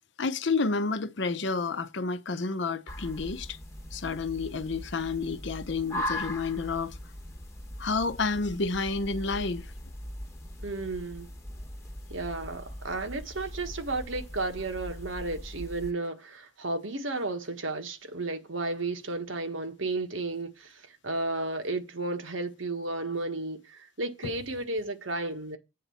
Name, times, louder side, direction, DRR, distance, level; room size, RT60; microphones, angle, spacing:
voice 1, 0.2-3.6 3.9-7.0 7.8-9.7 24.2-24.3, left 4 dB, 65° left, 0.7 m, -30 dB
sound 1, 2.9-15.9, left 1 dB, 15° left, 1.1 m, -40 dB
voice 2, 10.6-11.3 12.1-25.6, right 2 dB, 80° right, 1.5 m, -33 dB
8.5 x 4.1 x 7.0 m
head